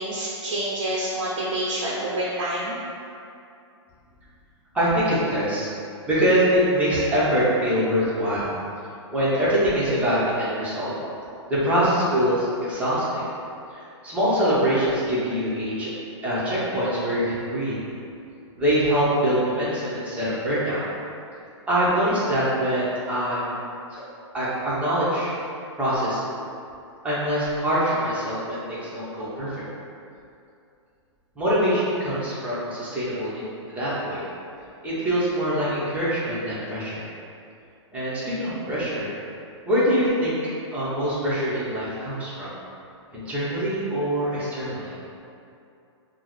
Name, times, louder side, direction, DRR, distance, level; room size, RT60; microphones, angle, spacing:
voice 1, 0.0-2.8, right 1 dB, 85° right, -6 dB, 0.6 m, -27 dB
voice 2, 4.7-5.7 6.1-8.5 9.1-10.9 11.5-13.3 13.7-15.9 16.2-17.8 18.6-20.8 21.7-23.6 24.3-25.3 25.8-26.2 27.0-29.5 31.4-34.2 34.8-37.0 37.9-39.1 39.7-40.4 40.7-42.5 43.1-44.9, equal, 10° right, -10 dB, 0.9 m, -24 dB
3.6 x 2.1 x 3.1 m, 2.6 s
hypercardioid pair, 135°, 16 cm